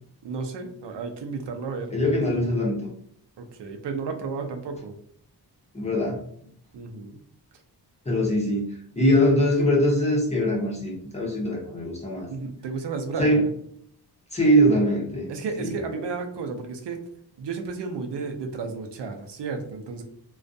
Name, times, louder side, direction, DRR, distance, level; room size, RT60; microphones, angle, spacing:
voice 1, 0.2-2.0 3.4-4.9 6.7-7.2 12.3-13.5 15.3-17.0 17.4-20.0, right 4 dB, 85° right, 5 dB, 0.6 m, -33 dB
voice 2, 1.9-2.9 5.7-6.2 8.0-8.7 9.0-12.3 13.2-13.4 14.3-15.3 15.6-15.7, equal, 15° left, -3 dB, 0.7 m, -22 dB
2.4 x 2.2 x 2.5 m, 0.64 s
wide cardioid pair, 175°, 41 cm